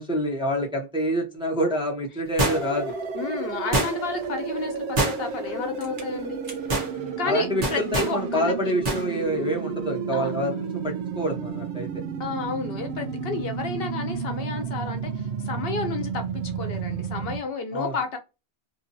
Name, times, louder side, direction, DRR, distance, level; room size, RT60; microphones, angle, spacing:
voice 1, 0.0-2.9 7.0-11.9 17.7-17.9, equal, 5° right, 0.6 m, -27 dB
sound 1, 2.4-2.9 3.7-4.2 5.0-5.5 5.8-6.0 6.4-6.9 7.6-8.2 8.8-9.0 9.4-9.5, right 1 dB, 50° right, 1.1 m, -25 dB
sound 2, 2.5-17.4, right 5 dB, 85° right, 0.8 m, -32 dB
voice 2, 3.1-6.4 7.2-8.7 10.1-10.3 12.2-18.2, left 4 dB, 65° left, 0.8 m, -31 dB
2.6 x 2.6 x 2.6 m
omnidirectional pair, 1.1 m